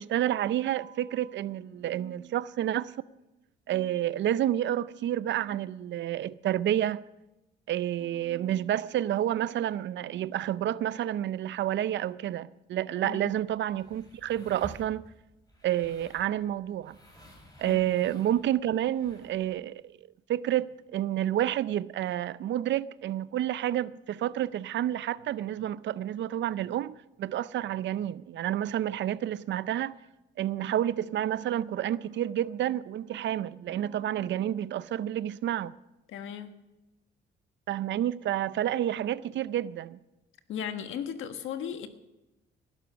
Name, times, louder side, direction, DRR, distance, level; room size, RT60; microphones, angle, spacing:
voice 1, 0.0-3.0 3.7-7.0 7.7-15.1 15.6-17.0 17.6-19.9 20.3-30.0 30.4-35.7 37.7-40.0, right 12 dB, 65° right, 0.6 m, -29 dB
voice 2, 13.0-13.3 17.6-17.8 36.1-36.5 40.5-41.9, left 8 dB, 80° left, 1.5 m, -36 dB
sound 1, 13.2-19.5, equal, 20° left, 6.5 m, -52 dB
19.5 x 11.5 x 5.2 m
cardioid pair, 90°, 20 cm